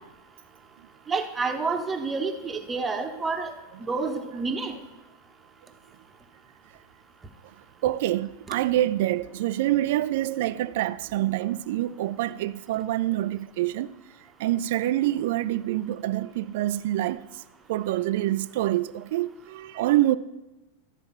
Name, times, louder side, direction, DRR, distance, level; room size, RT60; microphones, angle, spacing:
voice 1, 1.1-3.5 3.8-4.7, right 4 dB, 15° right, 0.9 m, -29 dB
voice 2, 7.8-13.9 14.4-17.3 17.7-20.2, right 14 dB, 50° right, 0.3 m, -26 dB
12.0 x 4.4 x 5.6 m
figure-of-eight pair, 90°, 0 cm